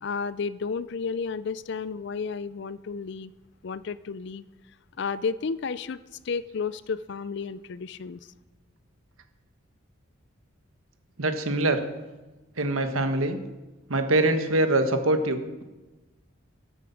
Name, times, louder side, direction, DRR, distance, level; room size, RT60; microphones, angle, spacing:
voice 1, 0.0-3.3 3.6-4.4 5.0-6.0 6.2-8.2, left 5 dB, 55° left, 17 dB, 0.4 m, -32 dB
voice 2, 11.2-11.8 12.6-13.4 13.9-15.6, right 2 dB, 90° right, 8 dB, 1.3 m, -24 dB
11.0 x 8.4 x 7.1 m, 1.1 s
head